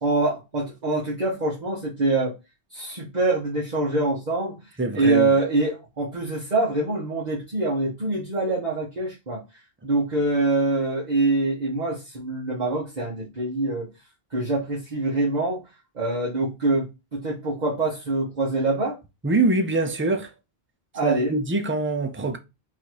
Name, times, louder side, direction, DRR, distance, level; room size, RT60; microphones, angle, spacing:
voice 1, 0.0-2.3 2.7-4.5 4.9-9.4 9.8-13.9 14.3-15.6 15.9-16.9 17.1-19.0 20.9-21.3, right 2 dB, 40° right, 1.3 m, -24 dB
voice 2, 4.8-5.3 19.2-20.3 21.0-22.4, right 3 dB, 20° right, 0.4 m, -24 dB
4.0 x 2.7 x 4.6 m
omnidirectional pair, 1.1 m